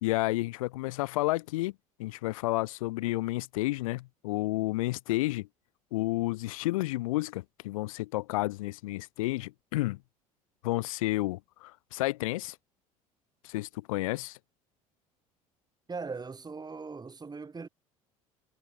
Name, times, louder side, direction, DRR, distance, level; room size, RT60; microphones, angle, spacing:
voice 1, 0.0-1.7 2.0-5.5 5.9-10.0 10.6-12.6 13.4-14.4, left 19 dB, 70° left, 0.8 m, -31 dB
voice 2, 15.9-17.7, right 4 dB, 20° right, 4.1 m, -39 dB
figure-of-eight pair, 60°, 18 cm